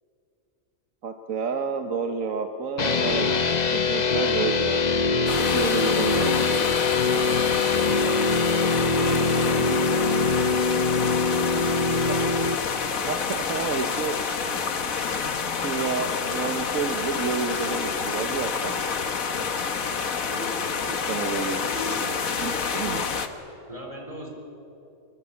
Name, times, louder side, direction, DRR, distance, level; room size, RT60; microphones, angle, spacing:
voice 1, 1.0-3.3 3.7-4.8 5.5-6.7 12.1-12.3 13.1-14.2 15.6-18.8 20.8-21.6 22.4-23.1, right 5 dB, 75° right, 5 dB, 1.5 m, -30 dB
sound 1, 2.8-12.5, left 4 dB, 35° left, 0.8 m, -23 dB
sound 2, 5.3-23.3, left 5 dB, 80° left, 1.7 m, -28 dB
voice 2, 9.0-11.0 19.9-20.7 21.5-22.2 23.7-24.3, equal, 25° right, 1 dB, 4.0 m, -39 dB
23.5 x 22.0 x 8.3 m, 2.9 s
omnidirectional pair, 1.4 m